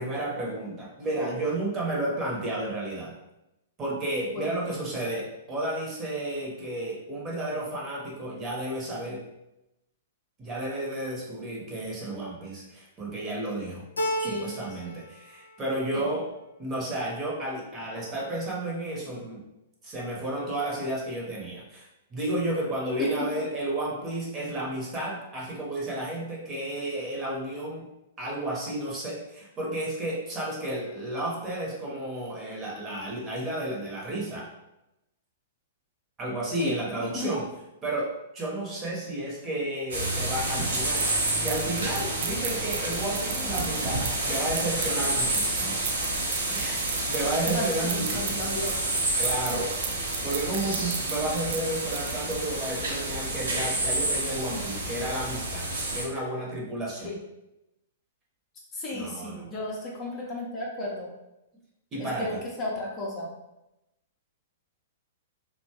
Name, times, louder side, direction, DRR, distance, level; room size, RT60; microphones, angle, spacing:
voice 1, 0.0-3.1 3.8-9.2 10.4-13.8 14.2-16.3 16.6-19.4 19.8-27.9 28.2-34.5 36.2-37.4 37.8-45.9 46.5-48.5 49.2-49.7 50.2-57.1 58.9-59.5 61.9-62.4, right 1 dB, 25° right, -4 dB, 1.0 m, -32 dB
Keyboard (musical), 14.0-15.1 15.4-16.1, equal, 75° left, 0.4 m, -32 dB
voice 2, 36.6-37.3 47.5-48.8 57.0-57.2 58.7-61.1 62.0-63.3, left 2 dB, 25° left, -3 dB, 0.6 m, -34 dB
sound 1, 39.9-56.1, right 2 dB, 65° right, 0.8 m, -29 dB
sound 2, 40.4-52.6, right 8 dB, 45° right, 0.3 m, -36 dB
2.9 x 2.2 x 2.8 m, 0.92 s
figure-of-eight pair, 110°, 0 cm